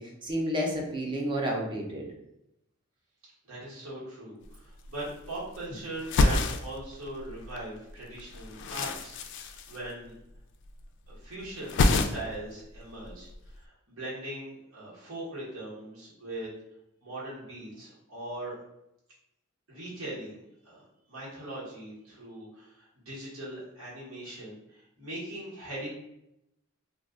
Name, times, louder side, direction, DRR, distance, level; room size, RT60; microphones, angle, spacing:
voice 1, 0.0-2.1, equal, 25° right, 0 dB, 0.5 m, -31 dB
voice 2, 3.4-10.1 11.1-16.5 17.0-18.6 19.7-20.4 20.6-20.8 21.1-25.9, right 1 dB, 85° right, -7 dB, 1.3 m, -40 dB
sound 1, 4.4-4.5 4.7-5.6 6.0-7.6 7.9-10.4 10.7-11.2 11.4-12.5 12.8-13.6, left 3 dB, 60° left, 0.3 m, -28 dB
2.4 x 2.3 x 3.6 m, 0.84 s
head